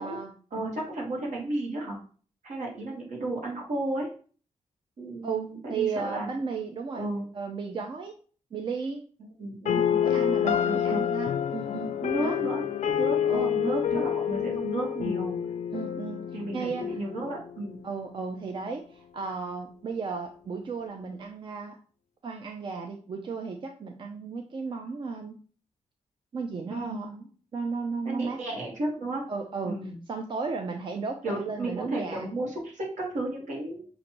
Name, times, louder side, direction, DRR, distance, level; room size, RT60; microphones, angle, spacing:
voice 1, 0.0-0.3 5.2-7.1 7.3-8.1 8.5-9.0 10.0-12.4 13.3-14.1 15.7-16.3 16.5-17.0 17.8-21.8 22.2-25.4 26.3-27.3 27.5-28.4 29.3-29.8 30.1-32.3, right 5 dB, 40° right, 3 dB, 0.4 m, -34 dB
voice 2, 0.5-2.0 2.4-4.1 5.0-6.3 6.9-7.2 9.4-10.0 10.4-11.0 12.0-12.6 12.9-15.3 16.3-17.8 26.7-27.0 28.0-29.2 29.6-29.9 31.2-33.9, right 2 dB, 70° right, -2 dB, 1.5 m, -33 dB
sound 1, 9.7-17.7, left 9 dB, 70° left, 0.4 m, -28 dB
6.4 x 2.5 x 2.9 m, 0.42 s
wide cardioid pair, 150°, 13 cm